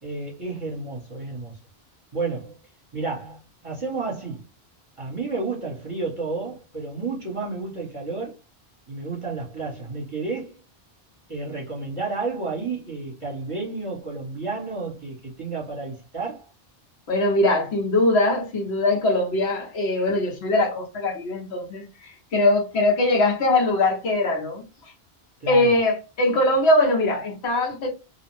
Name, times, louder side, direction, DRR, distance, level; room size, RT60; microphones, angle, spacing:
voice 1, 0.0-1.6 2.1-2.6 2.9-4.4 5.0-8.3 8.9-10.6 11.3-16.4 25.4-25.7, right 3 dB, 30° right, 1.0 m, -31 dB
voice 2, 17.1-24.6 25.5-27.9, left 2 dB, 90° left, 1.2 m, -21 dB
2.7 x 2.1 x 3.1 m
omnidirectional pair, 1.1 m